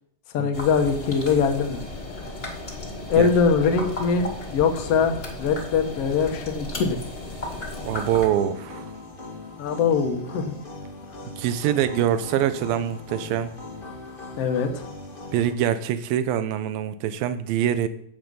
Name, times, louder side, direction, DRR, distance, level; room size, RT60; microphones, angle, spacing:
voice 1, 0.3-1.8 3.1-7.0 9.6-10.5 14.4-14.8, left 6 dB, 75° left, 5 dB, 1.4 m, -22 dB
sound 1, 0.5-8.3, left 2 dB, 20° left, 1.5 m, -35 dB
sound 2, 7.7-15.5, left 3 dB, 40° left, 0.7 m, -39 dB
voice 2, 7.8-8.9 11.4-13.5 15.3-17.9, right 10 dB, 75° right, 11 dB, 2.3 m, -24 dB
14.5 x 8.6 x 5.5 m, 0.72 s
omnidirectional pair, 4.9 m